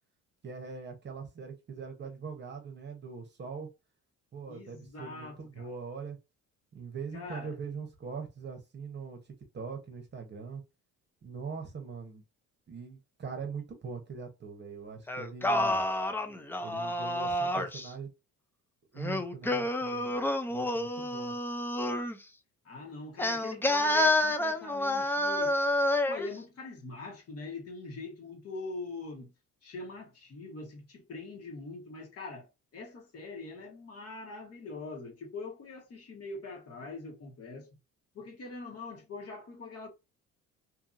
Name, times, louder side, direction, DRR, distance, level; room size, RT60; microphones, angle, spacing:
voice 1, 0.4-3.7 4.3-6.2 6.7-10.6 11.2-12.2 12.7-15.8 16.6-18.1 18.9-20.2 20.5-21.3, right 5 dB, 35° right, 0.9 m, -42 dB
voice 2, 4.5-5.7 7.1-7.5 22.6-25.6 26.1-29.3 29.6-37.7 38.1-39.9, left 3 dB, 50° left, 1.2 m, -43 dB
Singing, 15.1-17.9 19.0-22.2 23.2-26.3, left 1 dB, 5° left, 0.4 m, -29 dB
2.7 x 2.6 x 2.5 m
cardioid pair, 90°, 32 cm